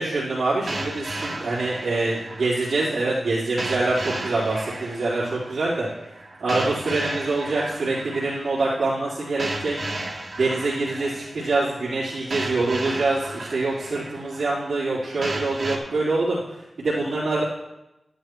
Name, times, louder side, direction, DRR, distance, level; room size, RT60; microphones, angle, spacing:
voice 1, 0.0-5.9 6.4-9.8 10.4-16.4 16.8-17.4, right 2 dB, 80° right, -12 dB, 3.8 m, -25 dB
sound 1, 0.7-15.8, right 2 dB, 45° right, 1.7 m, -35 dB
12.0 x 12.0 x 3.2 m, 0.91 s
wide cardioid pair, 155°, 0 cm